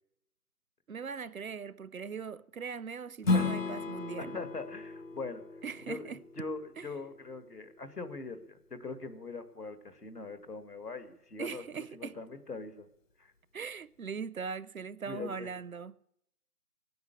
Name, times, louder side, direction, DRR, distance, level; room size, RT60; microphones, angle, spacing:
voice 1, 0.9-4.4 5.6-6.2 6.8-6.9 11.4-12.2 13.5-16.1, right 6 dB, 65° right, 0.6 m, -40 dB
Strum, 3.2-8.4, left 3 dB, 55° left, 1.2 m, -35 dB
voice 2, 3.3-3.7 4.2-5.5 5.9-11.6 11.9-12.9 13.2-13.3 15.1-15.5, left 3 dB, 80° left, 1.9 m, -42 dB
17.0 x 9.4 x 8.3 m
figure-of-eight pair, 160°, 46 cm